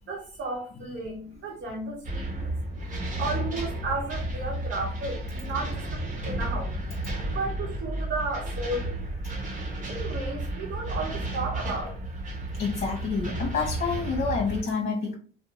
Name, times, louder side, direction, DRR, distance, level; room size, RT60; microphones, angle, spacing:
voice 1, 0.1-2.5 2.8-2.9 3.2-6.7 7.2-9.4 9.9-12.0, right 3 dB, 75° right, 0.9 m, -34 dB
sound 1, 2.0-14.6, right 1 dB, 40° right, 1.0 m, -32 dB
voice 2, 12.6-15.1, left 4 dB, 55° left, 0.9 m, -28 dB
2.5 x 2.0 x 3.0 m
cardioid pair, 90°, 20 cm